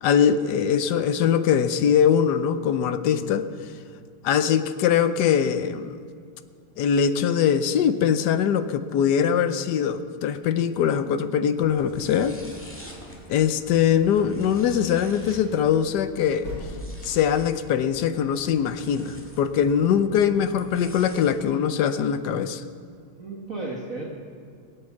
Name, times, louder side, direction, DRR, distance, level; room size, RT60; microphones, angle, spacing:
voice 1, 0.0-3.5 4.2-6.0 6.8-12.4 13.3-16.5 17.0-22.6, left 8 dB, 70° left, 11 dB, 1.0 m, -22 dB
sound 1, 11.6-21.4, equal, 5° left, 1.7 m, -46 dB
sound 2, 12.2-16.9, equal, 60° right, 5.9 m, -43 dB
voice 2, 20.2-21.1 23.1-24.1, right 2 dB, 40° right, -1 dB, 1.7 m, -37 dB
20.0 x 8.9 x 7.2 m, 2.2 s
omnidirectional pair, 2.4 m